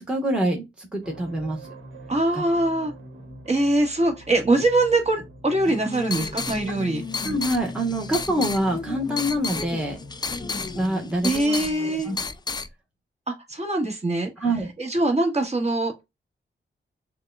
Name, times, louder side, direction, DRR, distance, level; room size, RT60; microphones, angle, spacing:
voice 1, 0.0-1.6 2.3-2.4 7.2-10.0 10.7-12.1 14.4-14.7, right 1 dB, 5° right, 1.0 m, -26 dB
sound 1, 1.0-10.9, right 1 dB, 80° right, 1.1 m, -43 dB
voice 2, 2.1-2.9 3.5-7.0 11.2-12.1 13.3-14.3 14.8-16.0, right 2 dB, 30° right, 1.3 m, -23 dB
sound 2, 5.6-12.7, left 4 dB, 20° left, 0.4 m, -32 dB
6.3 x 2.2 x 2.3 m
wide cardioid pair, 95°, 20 cm